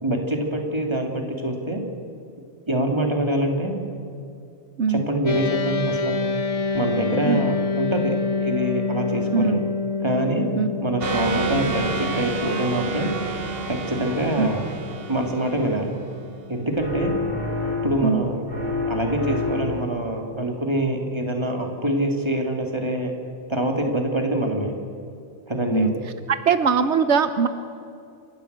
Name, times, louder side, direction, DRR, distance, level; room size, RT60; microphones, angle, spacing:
voice 1, 0.0-1.8 2.7-3.7 4.9-6.2 6.7-9.6 10.0-10.4 10.8-13.1 13.7-14.6 15.1-16.0 16.5-17.1 17.8-18.5 18.9-23.1 23.5-24.7 25.5-25.9, right 1 dB, 25° right, 2 dB, 2.7 m, -25 dB
sound 1, 5.3-16.8, left 4 dB, 35° left, 0.9 m, -28 dB
sound 2, 11.0-16.4, right 4 dB, 55° right, 1.4 m, -30 dB
sound 3, 16.8-18.2 18.5-20.0, left 3 dB, 40° right, 4.3 m, -27 dB
voice 2, 26.5-27.5, right 5 dB, 80° right, 11 dB, 1.2 m, -20 dB
29.0 x 13.0 x 8.1 m, 2.5 s
omnidirectional pair, 1.2 m